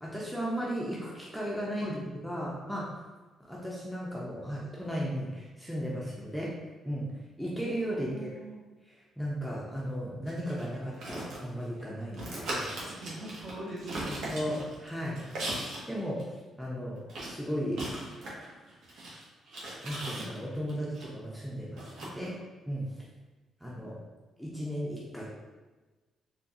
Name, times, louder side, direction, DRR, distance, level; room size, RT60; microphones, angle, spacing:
voice 1, 0.0-2.8 3.4-6.5 6.8-7.0 7.4-8.1 8.9-12.7 14.3-15.2 15.9-17.0 17.3-17.8 19.8-22.3 22.7-22.9 23.6-24.0 24.4-25.2, equal, ahead, -5 dB, 0.6 m, -35 dB
voice 2, 7.9-8.6 13.0-14.3, right 1 dB, 40° right, -4 dB, 0.9 m, -41 dB
sound 1, 10.3-11.8 12.1-15.9 16.2-16.3 17.1-21.0 21.8-22.3, right 1 dB, 75° right, 0.9 m, -38 dB
3.7 x 2.2 x 2.7 m, 1.2 s
cardioid pair, 90°, 0 cm